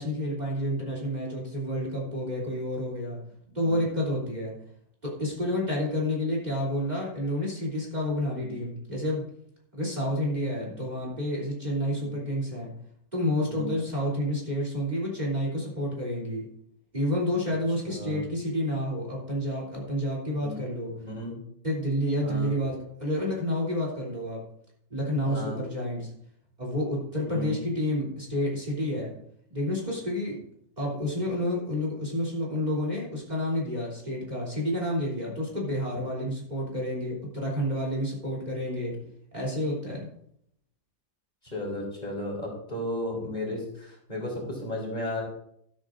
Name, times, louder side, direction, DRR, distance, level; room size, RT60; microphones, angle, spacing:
voice 1, 0.0-3.2 3.5-4.6 5.0-9.2 9.7-12.7 13.1-16.5 16.9-20.9 21.6-24.4 24.9-26.1 26.6-29.1 29.5-30.4 30.8-39.0 39.3-40.1, left 1 dB, 30° right, -3 dB, 3.5 m, -29 dB
voice 2, 13.5-13.8 17.8-18.2 20.4-20.7 21.0-21.4 22.2-22.5 25.2-25.6 27.3-27.6 41.4-45.2, left 1 dB, 30° left, -3 dB, 3.6 m, -35 dB
13.0 x 13.0 x 2.6 m, 0.72 s
omnidirectional pair, 1.6 m